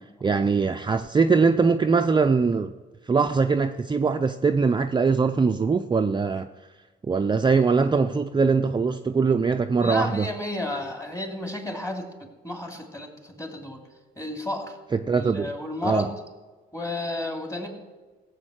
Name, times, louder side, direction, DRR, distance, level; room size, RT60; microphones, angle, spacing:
voice 1, 0.2-2.7 3.1-6.5 7.0-10.3 14.9-15.5 15.8-16.1, right 4 dB, 25° right, 6 dB, 0.5 m, -22 dB
voice 2, 9.8-13.8 14.2-14.8 15.1-16.1 16.7-17.7, left 1 dB, 15° left, 2 dB, 2.9 m, -32 dB
15.0 x 8.1 x 6.4 m, 1.3 s
cardioid pair, 90°, 20 cm